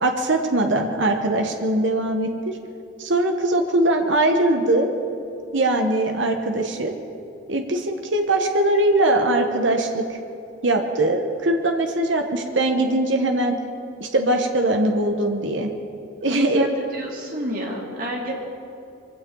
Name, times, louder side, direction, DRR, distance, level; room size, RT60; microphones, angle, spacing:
voice 1, 0.0-2.6 3.0-4.9 5.5-6.9 7.5-10.2 10.6-13.6 14.0-15.7 16.2-16.7, right 1 dB, 65° right, 4 dB, 1.2 m, -21 dB
voice 2, 16.3-18.3, equal, 45° right, -2 dB, 2.9 m, -29 dB
23.0 x 16.0 x 3.9 m, 2.7 s
head